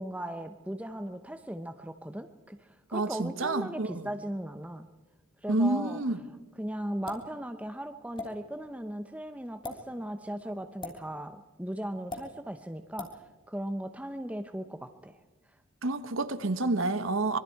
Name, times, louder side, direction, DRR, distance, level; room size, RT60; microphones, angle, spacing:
voice 1, 0.0-4.9 5.4-6.0 6.6-13.1 13.5-15.2, right 1 dB, 5° right, 0.7 m, -37 dB
voice 2, 2.9-4.1 5.5-6.2 15.8-17.4, right 2 dB, 70° right, 1.3 m, -29 dB
sound 1, 7.1-7.3 8.2-8.3 9.5-9.8 10.8-11.0 12.1-12.2 13.0-13.1, left 2 dB, 25° left, 3.2 m, -38 dB
25.5 x 22.5 x 4.6 m
head